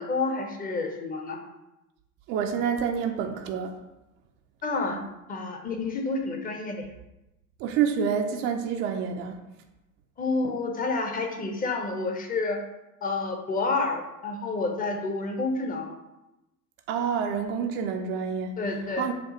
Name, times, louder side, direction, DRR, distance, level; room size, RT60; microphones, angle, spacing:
voice 1, 0.0-1.4 4.6-5.0 5.3-6.9 10.2-12.6 13.0-15.9 18.6-19.1, left 3 dB, 20° left, 3 dB, 0.7 m, -29 dB
voice 2, 2.3-3.7 7.6-9.4 16.9-18.6 19.0-19.1, right 7 dB, 30° right, 4 dB, 0.4 m, -28 dB
7.3 x 2.5 x 2.8 m, 0.94 s
figure-of-eight pair, 80°, 44 cm